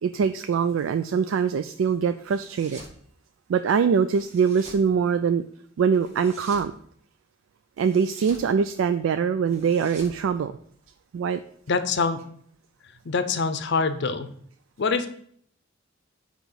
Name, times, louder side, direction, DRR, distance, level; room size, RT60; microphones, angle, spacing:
voice 1, 0.0-2.8 3.5-5.4 5.8-6.7 7.8-10.5 11.1-11.4, right 6 dB, 70° right, 10 dB, 0.3 m, -23 dB
sound 1, 2.3-3.0 4.1-4.9 6.0-6.7 7.8-8.5 9.5-11.0, right 2 dB, 35° right, 1.7 m, -46 dB
voice 2, 11.7-12.2 13.1-14.3 14.8-15.1, left 4 dB, 60° left, 10 dB, 0.6 m, -24 dB
8.8 x 3.0 x 5.4 m, 0.63 s
head